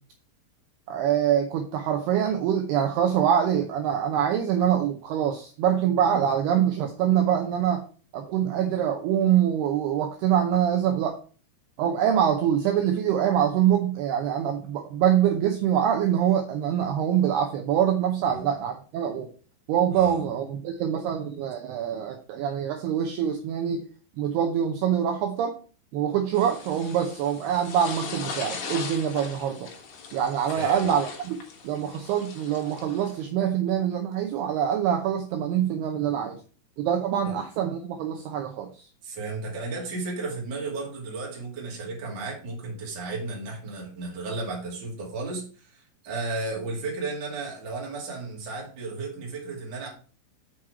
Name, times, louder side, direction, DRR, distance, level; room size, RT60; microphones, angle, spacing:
voice 1, 0.9-7.8 8.1-11.2 11.8-19.3 19.7-23.8 24.2-25.5 25.9-29.7 30.1-31.4 31.6-36.4 36.8-38.9, right 9 dB, 85° right, 2.3 m, -24 dB
voice 2, 19.9-20.2 30.6-30.9 37.2-37.4 39.0-49.9, right 3 dB, 35° right, 2.0 m, -34 dB
sound 1, 26.3-33.2, left 5 dB, 85° left, 1.5 m, -39 dB
6.3 x 5.9 x 4.7 m
omnidirectional pair, 5.5 m